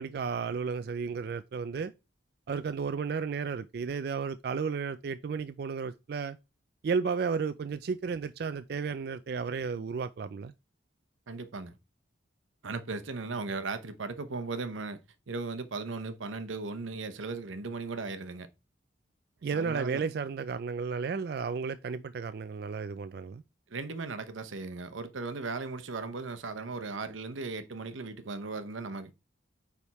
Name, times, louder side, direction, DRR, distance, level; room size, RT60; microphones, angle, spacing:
voice 1, 0.0-1.9 2.5-6.4 6.8-10.5 19.4-23.4, right 5 dB, 55° right, 0.3 m, -33 dB
voice 2, 11.3-11.8 12.6-15.0 15.3-18.5 19.5-20.1 23.7-29.1, right 3 dB, 90° right, 0.8 m, -37 dB
9.1 x 3.5 x 4.2 m
head